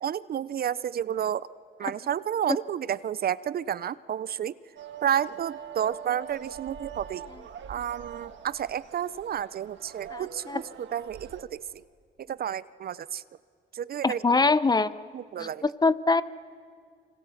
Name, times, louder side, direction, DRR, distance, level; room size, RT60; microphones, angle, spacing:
voice 1, 0.0-1.5 1.8-4.5 5.0-7.3 7.7-10.6 10.9-11.6 12.3-13.2 13.7-14.2 15.1-15.6, right 9 dB, 50° right, 18 dB, 0.5 m, -30 dB
sound 1, 4.8-11.4, right 8 dB, 65° right, 1.6 m, -44 dB
voice 2, 10.1-10.6 14.0-15.1 15.4-16.2, left 3 dB, 20° left, 15 dB, 0.7 m, -24 dB
25.5 x 25.5 x 7.2 m, 2.2 s
cardioid pair, 90°, 20 cm